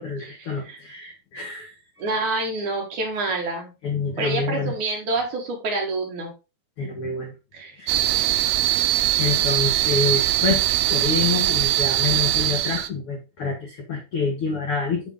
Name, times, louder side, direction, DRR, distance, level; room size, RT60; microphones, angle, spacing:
voice 1, 0.0-2.1 3.8-4.7 6.8-7.3 7.8-7.9 9.2-10.6 10.9-15.0, left 4 dB, 70° left, 1 dB, 1.3 m, -27 dB
voice 2, 2.0-3.7 4.2-6.3 7.5-7.7, right 2 dB, 55° right, 0 dB, 3.0 m, -27 dB
sound 1, 7.9-12.9, right 15 dB, 85° right, 2.4 m, -21 dB
9.0 x 3.8 x 3.6 m, 0.28 s
omnidirectional pair, 4.4 m